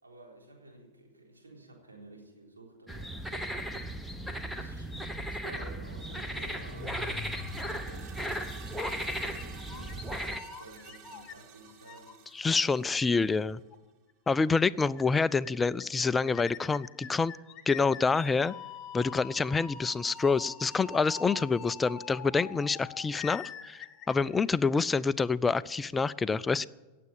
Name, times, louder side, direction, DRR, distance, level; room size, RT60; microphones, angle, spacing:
voice 1, 0.0-3.5 4.5-8.1 8.9-12.2 12.6-13.1, right 2 dB, 75° right, -1 dB, 3.9 m, -52 dB
sound 1, 2.9-10.4, equal, ahead, 1.1 m, -36 dB
sound 2, 5.8-13.6, right 11 dB, 40° right, 0.8 m, -52 dB
sound 3, 6.7-8.3 8.8-10.0 10.3-12.1 12.6-12.7 13.7-13.8 14.1-14.2 14.5-14.6 14.8-15.0 15.3-15.9 16.3-24.9, left 7 dB, 30° left, 1.1 m, -45 dB
voice 2, 12.3-13.6 14.3-17.3 17.7-18.5 18.9-26.7, left 4 dB, 15° left, 18 dB, 0.4 m, -27 dB
17.5 x 7.6 x 8.6 m, 1.2 s
figure-of-eight pair, 90°, 0 cm